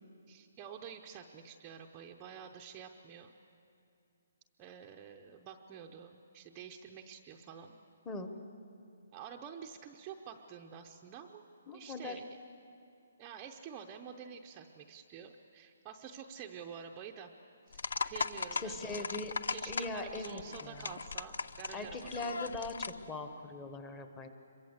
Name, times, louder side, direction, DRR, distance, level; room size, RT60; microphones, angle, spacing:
voice 1, 0.3-3.3 4.6-7.8 9.1-11.4 11.7-12.2 13.2-17.3 17.7-19.1 19.5-22.5, right 7 dB, 15° right, 2 dB, 0.6 m, -49 dB
voice 2, 11.7-12.2 18.6-19.3 19.7-20.9 21.7-22.7 23.1-24.3, left 3 dB, 10° left, 7 dB, 1.0 m, -41 dB
sound 1, 17.7-23.1, left 4 dB, 75° left, 0.8 m, -39 dB
26.0 x 23.0 x 8.0 m, 2.5 s
hypercardioid pair, 180°, 0 cm